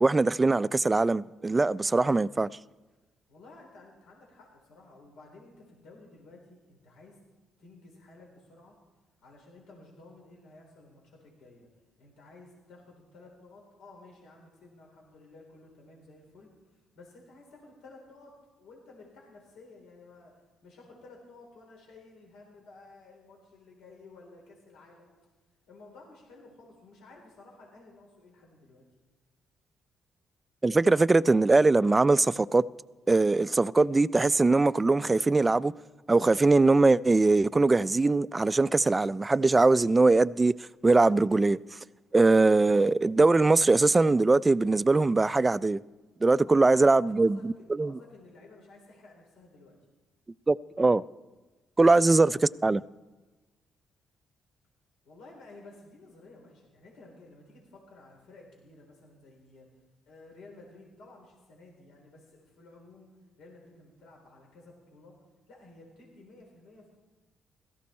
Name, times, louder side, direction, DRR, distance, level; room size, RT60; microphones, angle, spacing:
voice 1, 0.0-2.5 30.6-32.6 33.1-35.7 36.1-40.5 40.8-41.6 42.1-45.8 46.2-47.9 50.5-51.0 51.8-52.8, right 3 dB, 20° right, 0.3 m, -22 dB
voice 2, 3.3-7.2 7.6-8.7 9.2-11.7 12.0-20.3 20.6-25.1 25.7-28.8 46.4-49.8 55.0-59.7 60.1-63.1 63.4-65.2 65.5-67.0, left 2 dB, 85° left, 3.9 m, -53 dB
17.0 x 14.0 x 4.3 m
cardioid pair, 90°, 0 cm